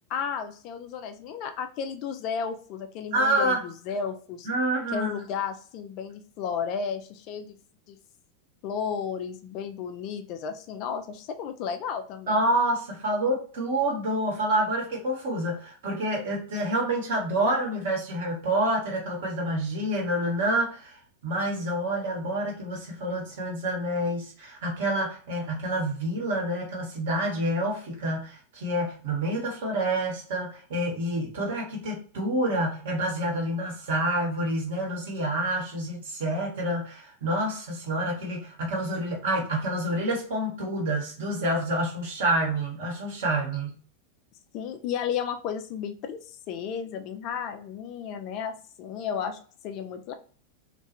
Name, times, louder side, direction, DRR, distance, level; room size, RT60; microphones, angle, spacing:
voice 1, 0.1-4.5 4.9-7.6 7.9-8.0 8.6-12.4 44.5-49.4 49.6-50.1, left 7 dB, 40° left, 7 dB, 0.3 m, -33 dB
voice 2, 3.1-3.6 4.4-5.1 12.3-43.8, right 1 dB, 55° right, 0 dB, 1.0 m, -28 dB
2.3 x 2.2 x 2.8 m, 0.42 s
figure-of-eight pair, 90°, 0 cm